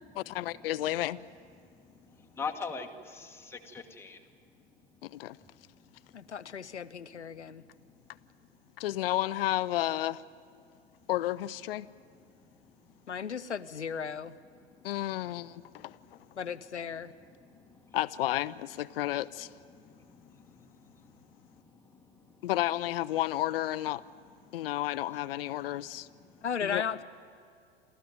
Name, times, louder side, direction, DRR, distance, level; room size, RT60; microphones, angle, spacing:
voice 1, 0.3-1.2 5.0-5.4 8.8-10.2 11.1-11.9 14.8-16.0 17.9-19.5 22.4-24.0 24.5-26.1 26.6-26.8, left 14 dB, 55° left, 0.6 m, -31 dB
voice 2, 1.6-4.2 5.4-5.5 6.0-6.3 7.3-7.8 8.2-8.3 12.3-13.0 14.5-14.9 15.7-16.2 17.4-18.0 19.7-22.4 24.4-24.7 26.3-26.5, left 5 dB, 5° left, 1.4 m, -45 dB
voice 3, 6.1-7.6 13.1-14.3 16.4-17.1 26.4-27.0, left 7 dB, 80° left, 0.8 m, -35 dB
28.0 x 13.5 x 9.3 m
figure-of-eight pair, 90°, 34 cm